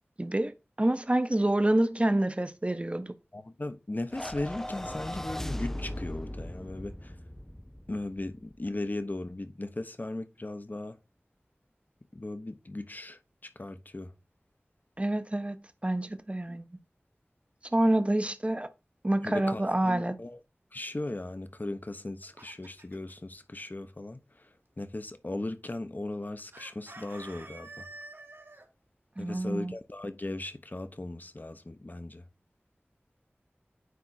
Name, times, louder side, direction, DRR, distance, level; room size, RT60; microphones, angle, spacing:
voice 1, 0.2-3.1 15.0-15.6 15.8-16.7 17.7-18.7 19.0-20.2 29.2-29.7, right 1 dB, 30° right, 0.9 m, -27 dB
voice 2, 3.3-7.1 7.9-11.0 12.1-13.2 13.6-14.1 19.2-20.4 20.7-24.2 24.8-27.9 29.2-32.2, left 2 dB, 45° left, 1.0 m, -37 dB
sound 1, 4.1-8.5, left 1 dB, 10° left, 0.5 m, -38 dB
Chicken rooster, 21.9-23.1 26.5-28.7, right 2 dB, 60° right, 1.7 m, -48 dB
9.4 x 3.6 x 4.2 m
wide cardioid pair, 55°, 4 cm